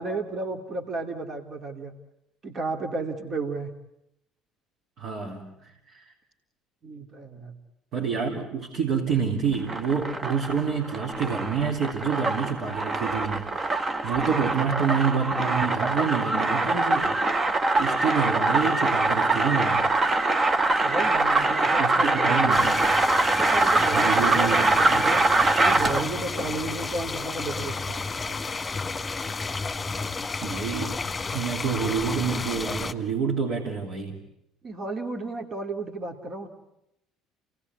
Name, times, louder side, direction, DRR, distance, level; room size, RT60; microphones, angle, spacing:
voice 1, 0.0-1.9 2.4-3.7 6.8-7.5 20.7-22.6 23.3-25.3 25.6-28.0 34.6-36.5, right 3 dB, 45° right, 4 dB, 2.7 m, -33 dB
voice 2, 5.0-6.1 7.9-13.8 14.0-17.2 17.8-19.9 21.8-22.9 23.9-25.1 30.4-31.0 31.3-34.2, right 6 dB, 60° right, -1 dB, 3.6 m, -28 dB
sound 1, 9.5-26.2, right 2 dB, 30° right, 1.3 m, -23 dB
sound 2, 22.5-32.9, left 4 dB, 25° left, 1.6 m, -32 dB
28.5 x 19.0 x 9.7 m, 0.83 s
hypercardioid pair, 65°, 0 cm